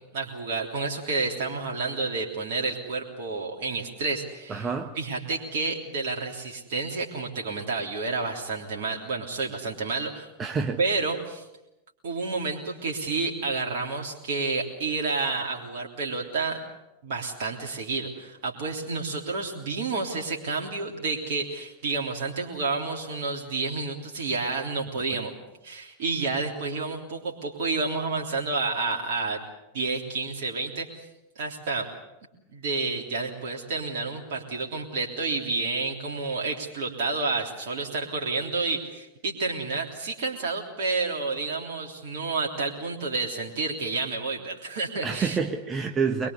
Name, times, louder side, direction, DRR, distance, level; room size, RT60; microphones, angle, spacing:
voice 1, 0.1-4.7 5.0-10.3 10.8-11.4 12.0-16.6 17.0-25.3 25.6-29.4 29.7-30.9 31.4-31.9 32.5-45.4, right 3 dB, 55° right, 0 dB, 3.4 m, -30 dB
voice 2, 4.5-5.0 10.4-10.8 45.0-46.3, right 5 dB, 20° right, 5 dB, 1.4 m, -27 dB
23.0 x 22.5 x 8.2 m, 0.92 s
figure-of-eight pair, 90°, 0 cm